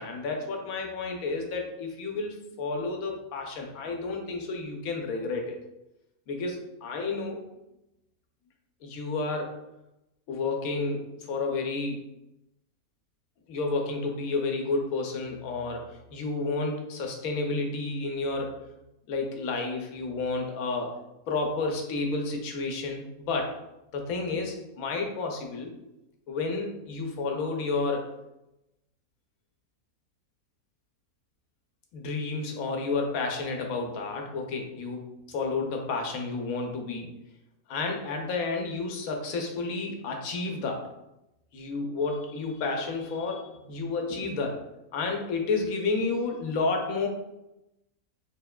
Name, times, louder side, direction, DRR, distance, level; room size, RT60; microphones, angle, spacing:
voice 1, 0.0-5.6 6.3-7.4 8.8-9.5 10.3-12.0 13.5-18.5 19.1-20.9 21.3-23.6 23.9-25.7 26.3-28.1 31.9-37.1 37.7-40.9 41.5-44.6 44.9-47.1, left 3 dB, 80° left, 2 dB, 1.1 m, -31 dB
4.4 x 3.4 x 2.2 m, 0.91 s
omnidirectional pair, 1.5 m